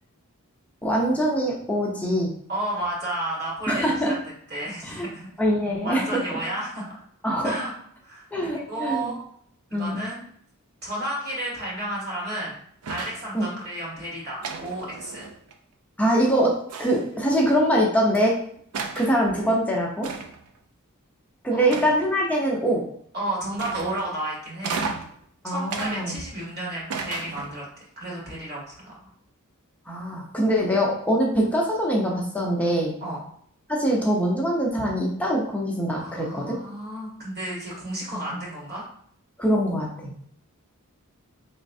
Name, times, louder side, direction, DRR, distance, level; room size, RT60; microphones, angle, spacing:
voice 1, 0.8-2.3 3.7-4.1 4.8-5.1 5.4-6.2 7.2-7.5 8.3-9.1 9.7-10.0 13.3-13.5 16.0-18.4 19.0-20.1 21.4-22.8 25.4-26.2 29.9-32.9 33.7-36.6 39.4-40.1, equal, 5° left, -3 dB, 0.6 m, -23 dB
voice 2, 2.5-4.0 4.5-5.3 5.8-6.9 7.4-7.7 8.0-9.2 9.7-10.2 10.8-12.5 12.9-15.2 21.5-21.8 23.1-24.9 25.4-27.6 28.0-29.0 33.0-33.2 36.0-38.8, right 1 dB, 50° right, -4 dB, 1.7 m, -32 dB
sound 1, 12.8-13.3 14.4-15.5 16.7-17.2 18.1-18.2 18.7-19.2 20.0-20.5 21.7-22.3 23.6-24.1 24.6-25.2 25.7-26.5 26.9-27.6, right 4 dB, 85° right, 0.5 m, -34 dB
4.4 x 3.1 x 2.6 m, 0.64 s
head